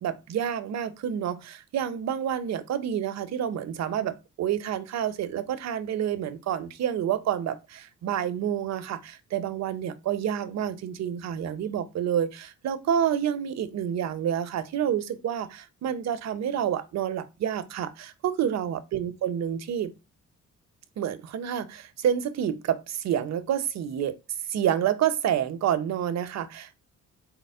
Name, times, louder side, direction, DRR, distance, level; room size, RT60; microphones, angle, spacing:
voice 1, 0.0-19.9 21.0-24.1 24.5-26.8, right 9 dB, 60° right, 0.7 m, -28 dB
4.2 x 2.1 x 4.2 m
cardioid pair, 90°, 30 cm